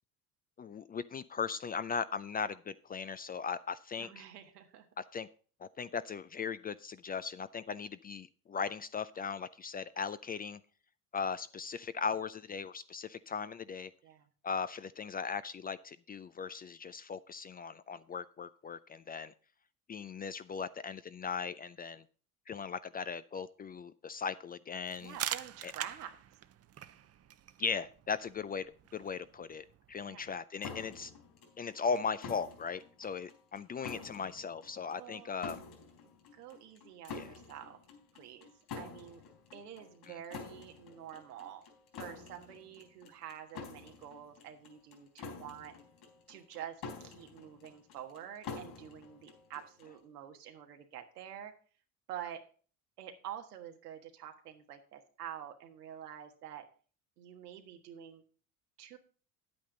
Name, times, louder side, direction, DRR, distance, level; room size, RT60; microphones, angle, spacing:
voice 1, 0.6-4.2 5.0-5.3 5.6-10.6 11.1-13.9 14.4-19.3 19.9-22.0 22.5-25.2 25.6-25.7 27.6-28.7 28.9-31.1 31.6-35.6 37.1-37.3 40.1-40.2, left 5 dB, 20° left, 15 dB, 0.4 m, -38 dB
voice 2, 4.0-4.9 14.0-14.3 25.0-26.1 30.0-30.3 35.0-35.3 36.3-37.8 38.1-38.5 38.7-39.2 39.5-41.6 42.0-45.7 46.3-51.5 52.1-52.4 53.0-56.6 57.2-58.2 58.8-59.0, right 10 dB, 85° right, 4 dB, 1.5 m, -47 dB
sound 1, 24.9-30.4, right 10 dB, 35° right, 0.7 m, -44 dB
sound 2, 30.6-50.0, left 5 dB, 55° left, 4.3 m, -48 dB
10.0 x 8.6 x 3.8 m, 0.41 s
hypercardioid pair, 70°, 45 cm